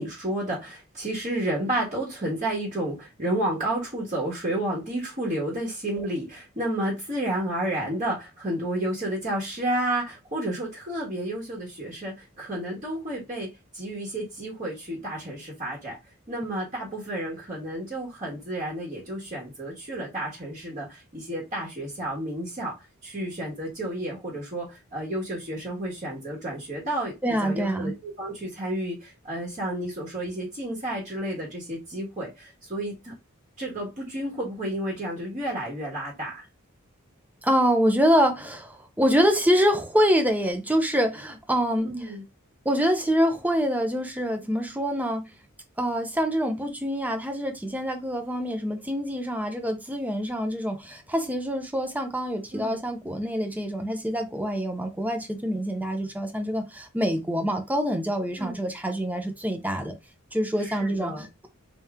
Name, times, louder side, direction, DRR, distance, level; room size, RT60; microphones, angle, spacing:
voice 1, 0.0-13.5 13.7-16.0 16.3-22.8 23.0-27.1 27.4-33.1 33.6-36.4 41.8-42.2 52.5-52.8 58.4-58.5 60.6-61.3, right 1 dB, 35° right, 1.3 m, -31 dB
voice 2, 27.2-27.9 37.4-42.1 42.6-45.3 45.8-59.9 60.3-61.5, equal, 10° right, 0.7 m, -25 dB
3.4 x 2.9 x 3.6 m
head